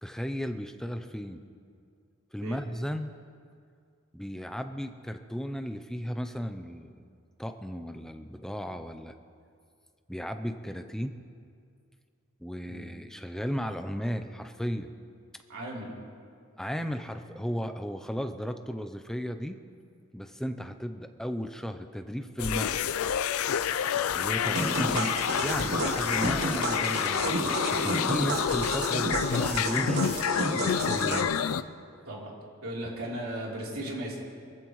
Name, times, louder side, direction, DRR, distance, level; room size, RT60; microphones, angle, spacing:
voice 1, 0.0-1.4 2.3-3.1 4.1-7.1 7.4-9.1 10.1-11.2 12.4-14.9 16.6-19.6 20.1-22.9 24.1-30.0 30.4-31.4, equal, ahead, 7 dB, 0.5 m, -35 dB
voice 2, 15.5-15.9 24.5-24.7 30.9-31.0 32.1-32.3 32.6-34.2, right 1 dB, 80° right, -4 dB, 3.6 m, -36 dB
sound 1, 22.4-31.6, left 8 dB, 85° left, 0.4 m, -28 dB
sound 2, 24.5-31.2, right 2 dB, 50° right, 1.3 m, -31 dB
23.5 x 14.5 x 3.1 m, 2.3 s
head